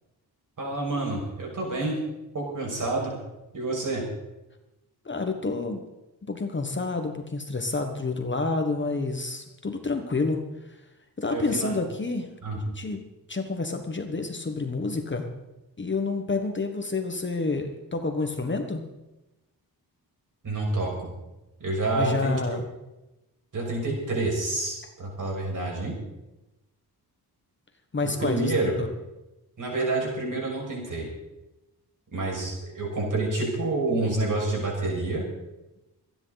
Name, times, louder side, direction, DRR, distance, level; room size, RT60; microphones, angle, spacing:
voice 1, 0.6-2.0 2.3-3.2 3.5-4.0 11.3-11.8 12.4-12.6 20.4-21.1 21.6-22.6 23.5-26.0 28.2-28.8 29.6-31.1 32.1-35.2, right 2 dB, 50° right, -2 dB, 6.3 m, -28 dB
voice 2, 5.0-5.8 6.3-10.8 11.2-13.0 13.3-15.3 15.8-18.8 21.9-22.7 27.9-28.9, left 3 dB, 30° left, 5 dB, 1.4 m, -29 dB
26.0 x 10.5 x 4.1 m, 0.99 s
wide cardioid pair, 140°, 39 cm